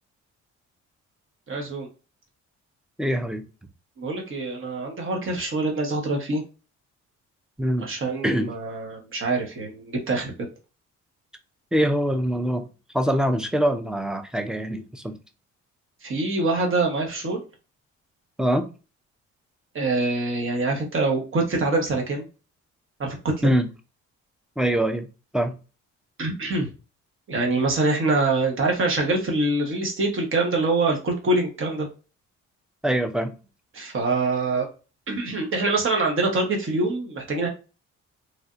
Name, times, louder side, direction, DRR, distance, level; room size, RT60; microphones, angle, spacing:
voice 1, 1.5-1.9 4.0-6.4 7.8-10.5 16.0-17.4 19.7-22.3 23.0-23.5 26.2-26.7 27.3-31.9 33.7-34.7 35.1-37.5, right 2 dB, 45° right, 1.1 m, -25 dB
voice 2, 3.0-3.4 7.6-7.9 8.2-8.5 11.7-12.6 12.9-15.2 18.4-18.7 23.4-23.7 24.6-25.1 25.3-25.5 32.8-33.3, equal, ahead, 0.4 m, -23 dB
3.3 x 2.5 x 2.5 m
cardioid pair, 90°, 30 cm